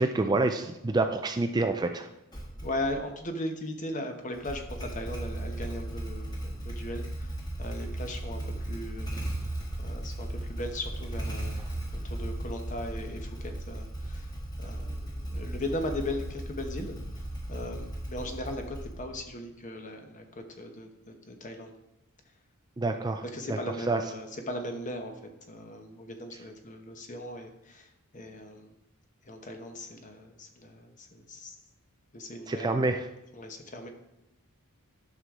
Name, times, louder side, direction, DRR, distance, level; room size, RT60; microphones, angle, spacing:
voice 1, 0.0-2.1 22.8-23.2 23.5-23.6 23.9-24.0 32.5-33.0, right 2 dB, 20° right, 6 dB, 0.4 m, -27 dB
Motorcycle / Engine starting, 2.3-3.0 4.3-19.2, right 1 dB, 20° left, 1.6 m, -36 dB
voice 2, 2.6-9.2 9.8-14.3 14.6-17.0 17.5-21.7 23.3-25.2 25.5-28.7 29.2-31.5 32.1-33.0 33.3-33.9, left 1 dB, 35° left, 5 dB, 1.0 m, -38 dB
11.0 x 6.4 x 3.7 m, 0.90 s
head